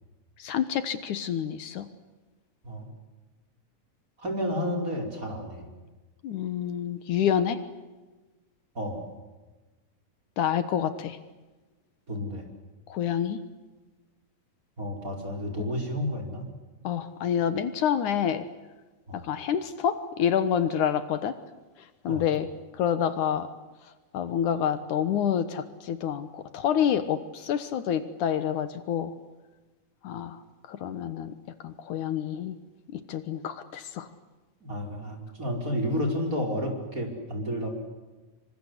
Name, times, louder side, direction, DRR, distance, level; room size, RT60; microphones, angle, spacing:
voice 1, 0.4-1.9 6.2-7.6 10.4-11.2 12.9-13.4 15.6-15.7 16.8-18.5 19.1-21.4 22.0-22.5 22.7-23.5 24.1-29.1 30.0-30.4 30.7-31.3 31.6-32.5 32.9-34.1, left 9 dB, 70° left, 12 dB, 2.6 m, -28 dB
voice 2, 4.2-5.7 8.8-9.1 12.1-12.4 14.8-16.4 19.1-19.2 22.1-22.3 34.6-37.7, equal, 25° right, 2 dB, 5.4 m, -31 dB
26.5 x 25.5 x 8.1 m, 1.2 s
omnidirectional pair, 3.7 m